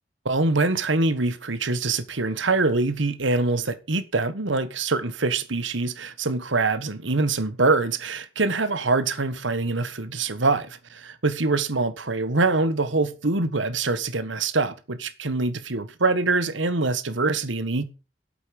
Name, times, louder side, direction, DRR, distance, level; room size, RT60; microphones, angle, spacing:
voice 1, 0.2-17.8, right 3 dB, 85° right, 1.4 m, -24 dB
8.5 x 8.4 x 7.0 m
head